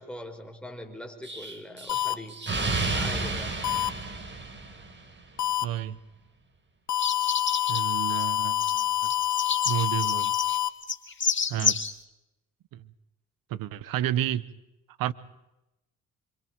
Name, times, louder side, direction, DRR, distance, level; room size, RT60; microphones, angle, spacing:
voice 1, 0.0-2.4 2.9-3.6, left 1 dB, 5° left, 4.8 m, -41 dB
Explosion, 1.2-5.1, right 3 dB, 35° right, 4.8 m, -31 dB
sound 1, 1.9-2.1 3.6-3.9 5.4-5.6 6.9-10.7, left 12 dB, 55° left, 1.7 m, -27 dB
voice 2, 5.6-6.0 7.7-9.1 9.7-10.3 11.5-11.8 12.7-12.8 13.5-14.4 15.0-15.1, right 12 dB, 85° right, 1.1 m, -31 dB
sound 2, 7.0-7.8 8.1-8.3 8.6-11.9, left 5 dB, 35° left, 2.3 m, -29 dB
27.0 x 25.0 x 4.6 m
cardioid pair, 75°, 34 cm